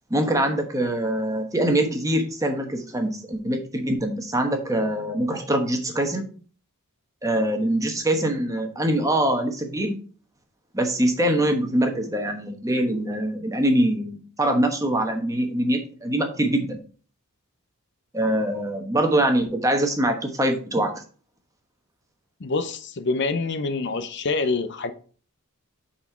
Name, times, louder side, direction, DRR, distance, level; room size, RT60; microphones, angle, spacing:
voice 1, 0.1-6.3 7.2-9.9 10.7-16.8 18.1-20.9, right 1 dB, 15° right, 4 dB, 1.1 m, -23 dB
voice 2, 22.4-24.9, left 3 dB, 50° left, 10 dB, 0.6 m, -26 dB
8.7 x 4.3 x 4.4 m, 0.41 s
head